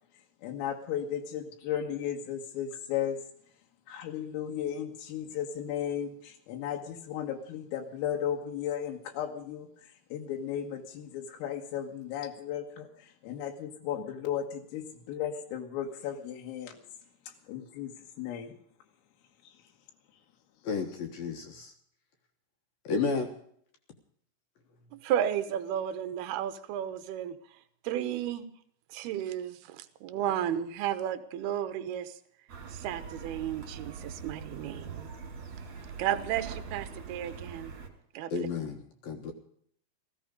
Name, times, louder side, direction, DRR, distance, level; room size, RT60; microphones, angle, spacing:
voice 1, 0.4-3.2 3.9-16.8 17.5-17.9 18.2-18.5, left 9 dB, 85° left, 2 dB, 4.3 m, -35 dB
voice 2, 20.6-21.7 22.8-23.3 38.3-39.3, left 4 dB, 65° left, 4 dB, 2.4 m, -32 dB
voice 3, 24.9-27.4 27.8-28.5 28.9-32.2 32.7-35.1 36.0-37.7 38.1-38.5, right 10 dB, 80° right, 11 dB, 2.3 m, -33 dB
sound 1, 32.5-37.9, right 5 dB, 40° right, 3.2 m, -43 dB
17.5 x 15.5 x 5.2 m, 0.64 s
omnidirectional pair, 5.8 m